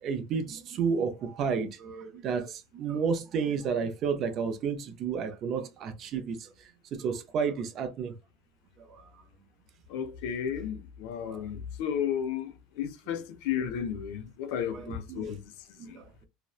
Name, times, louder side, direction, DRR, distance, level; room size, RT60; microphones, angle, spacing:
voice 1, 0.0-6.5 7.0-8.1 11.2-11.4 14.7-15.3 15.8-16.0, right 6 dB, 35° right, 0.4 m, -31 dB
voice 2, 9.9-15.5 15.9-16.0, left 8 dB, 60° left, 0.4 m, -33 dB
2.7 x 2.0 x 2.3 m
cardioid pair, 165°, 0 cm